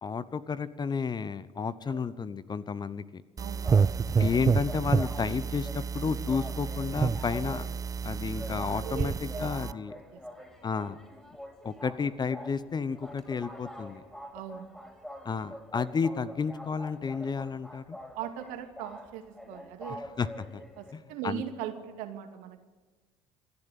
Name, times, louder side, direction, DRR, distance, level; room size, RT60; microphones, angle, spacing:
voice 1, 0.0-3.2 4.2-7.7 8.0-9.9 10.6-11.0 11.6-14.0 15.2-18.0 20.2-20.6 20.9-21.4, left 5 dB, 30° left, 15 dB, 1.0 m, -32 dB
sound 1, 3.4-9.7, right 6 dB, 25° right, 0.6 m, -29 dB
voice 2, 3.4-3.9 8.8-9.5 10.1-10.2 14.3-14.7 18.1-20.0 20.8-22.6, right 10 dB, 65° right, 7 dB, 2.3 m, -39 dB
sound 2, 3.6-20.9, left 1 dB, 5° left, 5.1 m, -45 dB
27.0 x 11.0 x 9.2 m, 1.2 s
figure-of-eight pair, 60°, 14 cm